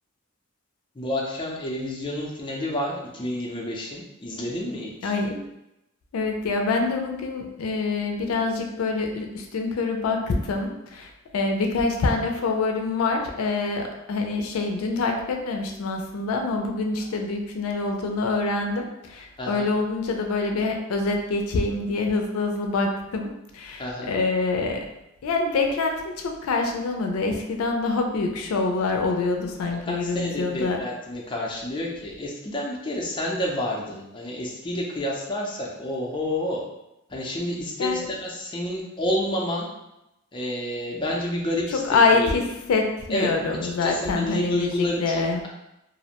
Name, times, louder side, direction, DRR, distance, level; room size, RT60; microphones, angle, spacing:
voice 1, 1.0-5.1 19.4-19.7 23.8-24.1 29.8-36.6 37.1-39.7 40.3-41.8 42.1-42.4 43.1-45.5, left 1 dB, 25° left, -2 dB, 0.4 m, -29 dB
voice 2, 5.0-5.4 6.1-24.8 25.2-30.8 37.8-38.1 41.7-45.4, left 3 dB, 90° left, 3 dB, 0.4 m, -25 dB
2.4 x 2.0 x 2.8 m, 0.89 s
head